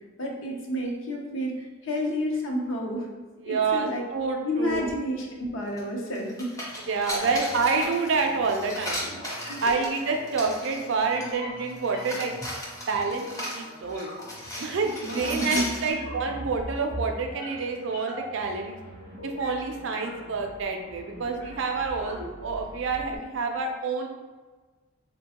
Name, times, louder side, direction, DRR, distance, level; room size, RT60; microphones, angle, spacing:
voice 1, 0.2-1.5 1.8-3.1 3.4-4.0 4.4-6.5 7.2-7.3 9.5-9.9 15.0-15.7, equal, 65° left, 0 dB, 0.6 m, -30 dB
voice 2, 3.4-4.9 6.9-9.1 9.6-12.3 12.9-14.1 14.6-18.8 19.2-24.1, right 4 dB, 60° right, 3 dB, 0.4 m, -28 dB
sound 1, 5.8-5.9 6.1-11.3 11.7-15.9, equal, 15° left, 0.5 m, -36 dB
sound 2, 7.2-23.2, right 1 dB, 45° left, 1.0 m, -42 dB
3.9 x 2.2 x 2.8 m, 1.3 s
head